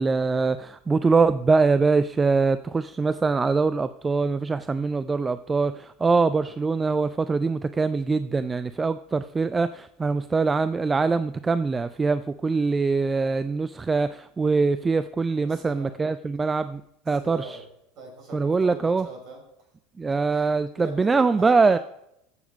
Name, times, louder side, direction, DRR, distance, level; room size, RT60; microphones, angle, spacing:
voice 1, 0.0-16.8 17.1-17.6 18.3-19.1 20.0-21.8, right 4 dB, 15° right, 13 dB, 0.4 m, -23 dB
voice 2, 15.4-16.0 17.2-17.7 18.0-19.4 20.3-20.5 20.7-21.8, right 2 dB, 45° right, 1 dB, 5.4 m, -41 dB
15.0 x 7.1 x 5.2 m, 0.79 s
figure-of-eight pair, 75°, 0 cm